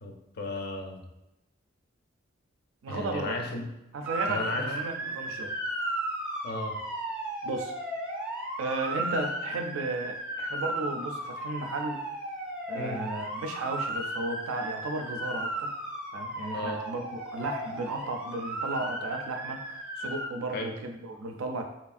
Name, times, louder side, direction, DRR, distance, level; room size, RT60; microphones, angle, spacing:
voice 1, 0.0-1.1 2.9-3.7 4.2-4.7 6.4-6.8 12.7-13.1 16.5-16.8 20.5-20.8, left 2 dB, 55° left, 2 dB, 0.4 m, -35 dB
voice 2, 2.8-3.4 3.9-5.5 7.4-7.7 8.6-12.0 12.7-15.7 16.1-21.6, right 2 dB, 85° right, 5 dB, 0.4 m, -34 dB
Motor vehicle (road) / Siren, 4.1-20.3, right 1 dB, 5° right, 0.4 m, -35 dB
3.0 x 2.4 x 2.4 m, 0.92 s
head